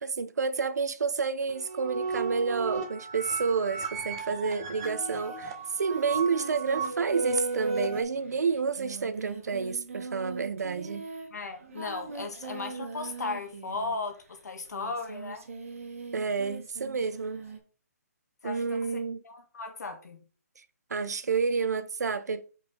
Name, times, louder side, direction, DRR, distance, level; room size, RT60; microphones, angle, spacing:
voice 1, 0.0-11.1 16.1-17.4 18.4-19.2 20.9-22.4, right 5 dB, 75° right, 0.8 m, -30 dB
sound 1, 1.5-8.0, right 4 dB, 20° right, 0.8 m, -34 dB
Singing, 4.8-14.2 14.7-17.6, right 5 dB, 55° right, 1.7 m, -42 dB
voice 2, 11.3-15.5 18.4-20.2, left 3 dB, 75° left, 1.7 m, -36 dB
5.0 x 4.3 x 5.0 m
hypercardioid pair, 175°, 9 cm